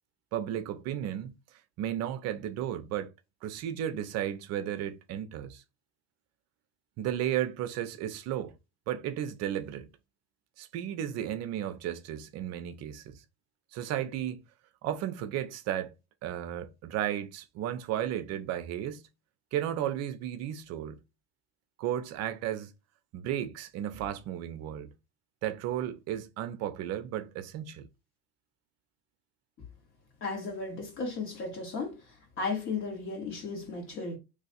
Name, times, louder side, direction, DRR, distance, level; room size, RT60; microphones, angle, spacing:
voice 1, 0.3-1.3 1.8-3.1 3.4-5.6 7.0-8.5 8.9-9.9 10.6-13.2 13.7-14.4 14.8-15.9 16.2-19.1 19.5-21.0 21.8-22.7 23.1-24.9 25.4-27.9, right 11 dB, 50° right, 0.6 m, -34 dB
voice 2, 30.2-32.0 32.4-34.2, left 4 dB, 40° left, 1.7 m, -35 dB
3.1 x 2.4 x 4.1 m
cardioid pair, 150°, 32 cm